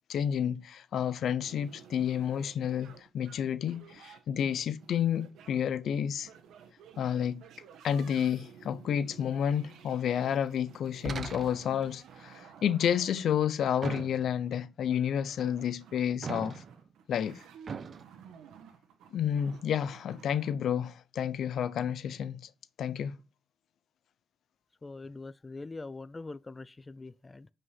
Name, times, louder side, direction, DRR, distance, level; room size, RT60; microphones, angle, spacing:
voice 1, 0.1-6.3 7.0-7.4 7.8-16.6 17.1-17.4 19.1-22.5 22.8-23.2, left 9 dB, 70° left, 0.7 m, -30 dB
sound 1, 1.4-20.5, right 7 dB, 85° right, 1.5 m, -54 dB
sound 2, 11.0-11.8 13.8-14.5 16.2-16.9 17.7-18.0, right 5 dB, 50° right, 0.9 m, -39 dB
voice 2, 24.8-27.5, left 3 dB, 25° left, 0.5 m, -43 dB
9.7 x 5.4 x 7.6 m
cardioid pair, 80°, 0 cm